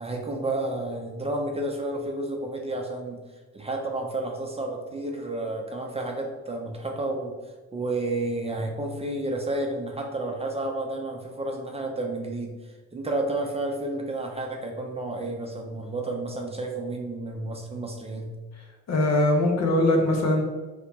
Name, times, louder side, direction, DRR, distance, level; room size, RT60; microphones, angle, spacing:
voice 1, 0.0-3.2 3.5-7.3 7.7-18.3, right 2 dB, 20° right, 1 dB, 0.5 m, -31 dB
voice 2, 18.9-20.4, left 1 dB, 60° left, 1 dB, 0.8 m, -21 dB
2.8 x 2.8 x 3.5 m, 1.3 s
cardioid pair, 90°, 30 cm